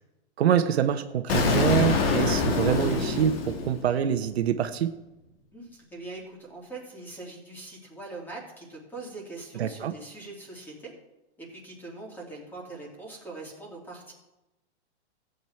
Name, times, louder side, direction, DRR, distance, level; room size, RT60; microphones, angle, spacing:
voice 1, 0.4-4.9 9.6-9.9, right 9 dB, 65° right, 7 dB, 1.1 m, -25 dB
Explosion, 1.3-4.2, left 4 dB, 60° left, 2.1 m, -25 dB
voice 2, 5.5-10.9 11.4-14.1, right 2 dB, 5° left, -2 dB, 3.0 m, -42 dB
15.0 x 8.3 x 4.5 m, 0.98 s
hypercardioid pair, 160°, 34 cm